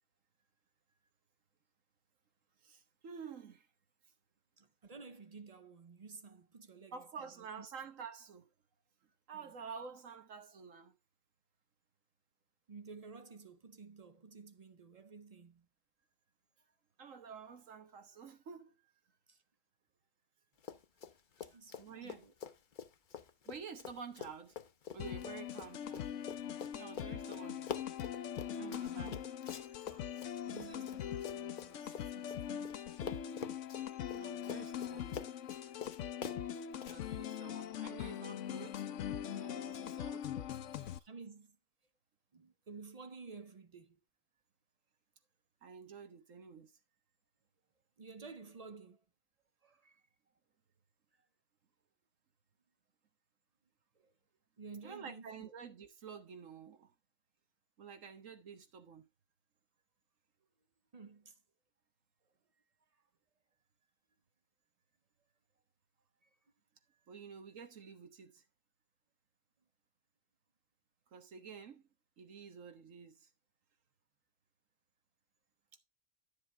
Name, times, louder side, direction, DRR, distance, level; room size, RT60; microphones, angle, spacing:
voice 1, 2.6-3.7 6.9-8.5 9.3-10.9 17.0-18.8 21.5-22.2 23.4-24.5 24.9-26.1 26.7-27.7 28.6-29.1 34.1-35.3 36.8-38.9 39.3-41.0 45.6-46.7 54.8-56.9 57.8-59.1 67.1-68.4 71.1-71.8 72.2-73.3, right 6 dB, 80° right, 1.6 m, -50 dB
voice 2, 4.6-7.0 7.4-7.7 9.3-9.5 12.7-15.7 19.3-19.4 21.4-22.3 28.6-29.2 29.7-30.1 30.5-32.9 36.6-37.1 41.1-41.6 42.3-44.0 48.0-49.0 49.6-50.0 53.9-54.1 54.6-55.5 60.9-61.4 62.9-63.0 66.2-66.3, right 4 dB, 40° right, 0.5 m, -53 dB
Run, 20.6-21.1 21.4-32.8 33.0-37.0, left 7 dB, 45° left, 0.7 m, -46 dB
sound 1, 25.0-41.0, left 10 dB, 70° left, 1.0 m, -42 dB
11.0 x 7.3 x 3.3 m
omnidirectional pair, 1.3 m